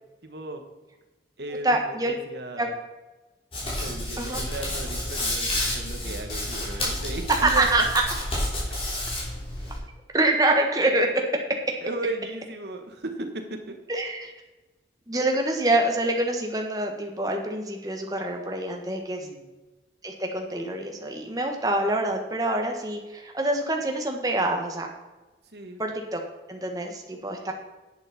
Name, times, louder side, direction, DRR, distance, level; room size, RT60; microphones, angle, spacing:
voice 1, 0.2-0.6 1.4-2.7 3.6-7.7 11.8-13.7 19.2-19.5 25.5-25.8, right 2 dB, 70° right, 5 dB, 1.4 m, -35 dB
voice 2, 1.6-2.1 2.6-2.7 4.2-4.4 7.4-7.8 10.1-11.2 13.9-14.3 15.1-19.3 20.0-24.9 25.8-26.2 26.5-27.5, right 2 dB, 20° right, 2 dB, 1.4 m, -25 dB
Hands, 3.5-9.8, left 1 dB, 30° left, 3.3 m, -30 dB
10.5 x 8.3 x 4.3 m, 1.1 s
head